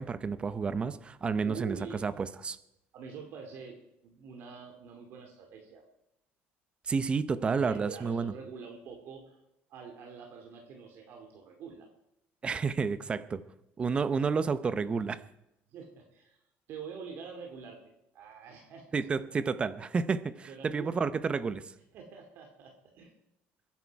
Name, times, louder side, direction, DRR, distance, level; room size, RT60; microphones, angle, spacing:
voice 1, 0.0-2.6 6.9-8.3 12.4-13.4 13.8-15.2 18.9-21.6, right 5 dB, 25° right, 14 dB, 0.8 m, -30 dB
voice 2, 1.4-2.0 2.9-3.8 4.0-5.8 7.4-9.4 9.7-11.9 15.7-16.4 16.7-17.8 18.1-18.9 20.5-21.0 21.9-23.1, right 6 dB, 55° right, 3 dB, 2.5 m, -45 dB
22.5 x 10.5 x 4.7 m, 0.83 s
cardioid pair, 145°, 5 cm